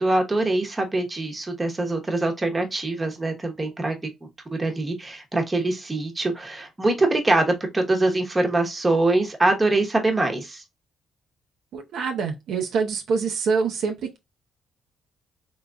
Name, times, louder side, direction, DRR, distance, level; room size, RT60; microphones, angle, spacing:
voice 1, 0.0-4.0 4.5-10.6, right 2 dB, 20° right, 1.0 m, -23 dB
voice 2, 11.7-14.2, right 5 dB, 75° right, 0.7 m, -25 dB
3.8 x 3.0 x 2.3 m
cardioid pair, 90°, 0 cm